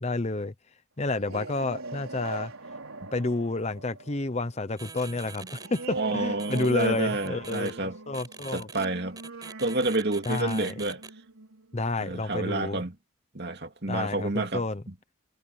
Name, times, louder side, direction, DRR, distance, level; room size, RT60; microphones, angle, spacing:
voice 1, 0.0-0.5 1.0-2.5 3.1-8.7 10.3-10.7 11.7-12.8 13.9-14.8, left 2 dB, 30° left, 0.8 m, -30 dB
sound 1, 1.1-12.2, right 3 dB, 85° right, 4.6 m, -42 dB
sound 2, 4.8-5.9 6.4-7.7 8.1-8.9 9.2-11.1, right 4 dB, 20° right, 5.1 m, -44 dB
voice 2, 6.0-8.0 8.5-9.2 9.6-11.0 12.0-12.9 13.3-14.6, right 2 dB, 50° right, 2.6 m, -29 dB
head